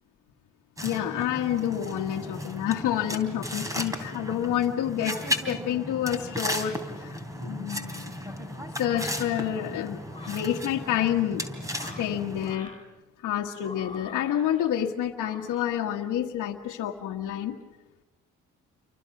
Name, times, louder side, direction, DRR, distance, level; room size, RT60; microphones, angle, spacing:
voice 1, 0.8-8.1 8.8-11.4 11.8-12.7 13.2-17.6, left 10 dB, 85° left, -2 dB, 1.5 m, -29 dB
sound 1, 0.8-12.6, left 1 dB, 10° right, 3.4 m, -35 dB
sound 2, 8.8-9.3 10.1-10.6 11.6-12.8 13.5-14.7 15.1-15.7, left 3 dB, 15° left, 5.3 m, -46 dB
29.0 x 24.0 x 6.0 m, 1.1 s
cardioid pair, 90°, 30 cm